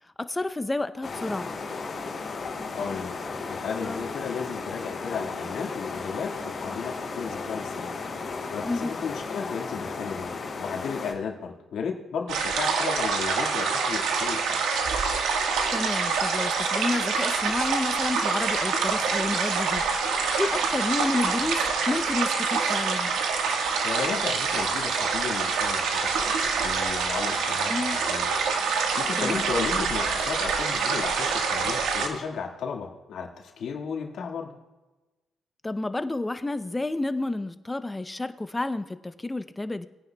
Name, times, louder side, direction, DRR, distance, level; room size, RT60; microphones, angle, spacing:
voice 1, 0.2-1.5 3.8-4.0 8.6-8.9 15.7-19.8 20.1-23.2 27.7-28.0 29.2-29.4 35.6-39.9, left 2 dB, 15° left, 11 dB, 0.6 m, -30 dB
sound 1, 1.0-11.1, left 4 dB, 50° left, 3.2 m, -35 dB
voice 2, 2.7-3.1 3.5-8.0 8.5-14.6 23.8-28.3 28.8-34.6, left 6 dB, 70° left, 1 dB, 1.7 m, -34 dB
sound 2, 12.3-32.1, right 5 dB, 85° right, 1.4 m, -26 dB
20.5 x 9.8 x 2.3 m, 1.1 s
cardioid pair, 90°, 0 cm